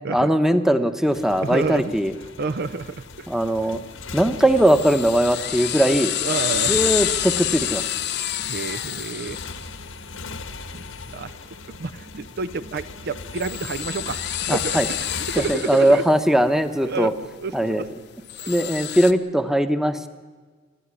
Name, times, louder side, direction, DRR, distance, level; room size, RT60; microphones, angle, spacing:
voice 1, 0.1-2.1 3.3-3.8 4.1-6.1 6.7-7.8 14.5-14.9 15.5-17.1 17.5-17.8 18.5-20.1, right 1 dB, ahead, 9 dB, 1.0 m, -20 dB
Motorcycle, 1.1-15.6, left 3 dB, 75° left, 1.4 m, -39 dB
voice 2, 1.4-1.9 2.4-3.3 6.2-6.8 8.5-9.4 11.1-11.5 11.8-16.0 16.8-17.1 17.4-17.9 18.4-18.6, right 4 dB, 55° right, 13 dB, 0.6 m, -29 dB
sound 1, 2.6-19.1, left 12 dB, 55° left, 1.0 m, -30 dB
sound 2, 3.5-16.5, right 1 dB, 80° right, 7.1 m, -47 dB
27.0 x 12.5 x 9.7 m, 1.5 s
head